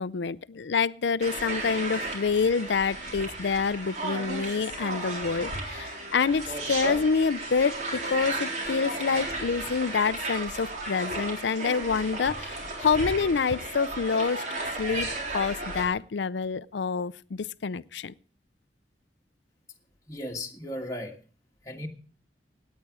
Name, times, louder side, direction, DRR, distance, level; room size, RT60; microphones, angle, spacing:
voice 1, 0.0-14.5 14.8-15.1 15.3-18.1, left 5 dB, 85° left, 0.5 m, -27 dB
sound 1, 1.2-15.9, right 2 dB, 45° right, 4.0 m, -34 dB
voice 2, 20.1-21.2 21.6-21.9, left 1 dB, 20° left, 1.6 m, -35 dB
17.5 x 9.4 x 4.8 m
head